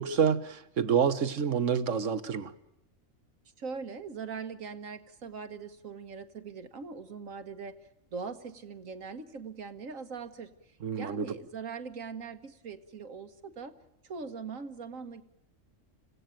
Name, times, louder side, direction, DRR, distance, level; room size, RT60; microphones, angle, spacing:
voice 1, 0.0-2.5 10.8-11.3, right 7 dB, 70° right, 1.5 m, -28 dB
voice 2, 3.6-7.8 8.1-13.7 14.0-15.2, right 5 dB, 85° right, 1.9 m, -41 dB
26.5 x 17.0 x 9.1 m
omnidirectional pair, 1.4 m